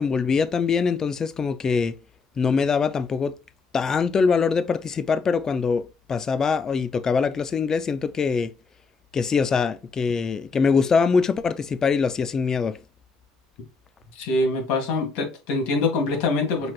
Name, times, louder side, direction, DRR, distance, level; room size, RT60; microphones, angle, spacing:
voice 1, 0.0-1.9 2.4-3.3 3.7-5.8 6.1-8.5 9.1-12.7, left 5 dB, 20° left, 0.4 m, -23 dB
voice 2, 14.1-16.7, left 3 dB, 60° left, 1.9 m, -24 dB
5.9 x 3.3 x 2.3 m
supercardioid pair, 150°, 3 cm